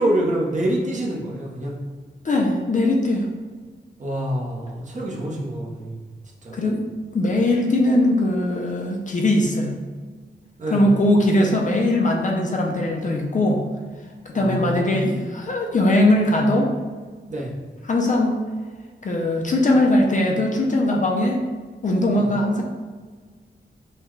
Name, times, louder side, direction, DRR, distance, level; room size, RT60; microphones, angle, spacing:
voice 1, 0.0-1.8 4.0-6.0 6.4-6.5 10.6-11.0 14.3-15.1 17.3-17.5 22.1-22.3, right 1 dB, 40° right, -3 dB, 0.8 m, -26 dB
voice 2, 2.2-3.3 6.5-6.8 7.1-9.7 10.7-13.6 14.3-16.7 17.9-18.4 19.0-21.4 21.8-22.6, left 1 dB, 40° left, 0 dB, 0.4 m, -20 dB
5.6 x 2.2 x 3.1 m, 1.5 s
wide cardioid pair, 170°, 20 cm